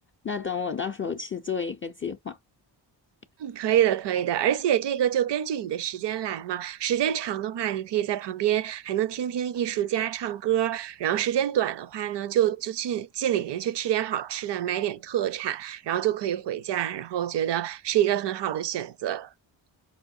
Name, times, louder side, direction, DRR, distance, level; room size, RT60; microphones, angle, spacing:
voice 1, 0.2-2.4, left 6 dB, 30° left, 0.4 m, -31 dB
voice 2, 3.4-19.3, right 11 dB, 60° right, 0.5 m, -27 dB
5.0 x 2.1 x 2.6 m
cardioid pair, 50°, 48 cm